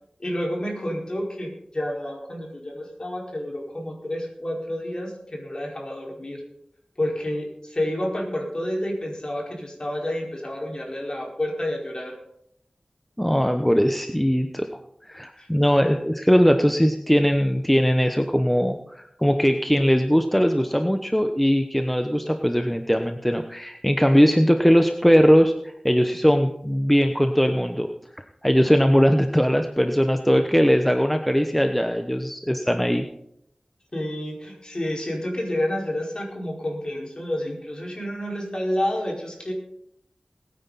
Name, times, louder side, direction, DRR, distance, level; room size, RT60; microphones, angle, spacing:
voice 1, 0.2-6.4 7.0-12.2 15.4-15.5 15.8-16.0 33.9-39.5, left 1 dB, 45° left, -1 dB, 4.9 m, -29 dB
voice 2, 13.2-27.9 28.4-33.0, equal, 5° left, 6 dB, 1.0 m, -20 dB
21.0 x 9.3 x 4.2 m, 0.75 s
wide cardioid pair, 50°, 2 cm